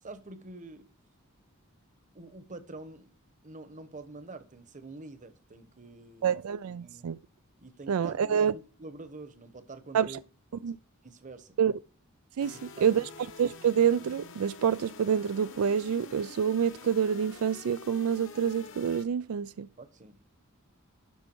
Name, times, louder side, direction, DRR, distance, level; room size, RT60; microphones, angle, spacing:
voice 1, 0.0-0.9 2.1-3.1 3.4-6.4 6.7-7.1 7.6-10.2 10.5-10.8 11.0-11.6 12.5-13.1 19.8-20.2, right 2 dB, 35° right, 1.0 m, -46 dB
voice 2, 6.2-7.2 7.9-8.5 9.9-10.1 10.6-10.7 11.6-11.7 12.4-12.6 12.8-13.1 13.4-19.7, right 8 dB, 85° right, 0.4 m, -27 dB
sound 1, 12.4-19.1, left 4 dB, 60° left, 1.1 m, -48 dB
11.5 x 5.6 x 4.5 m
head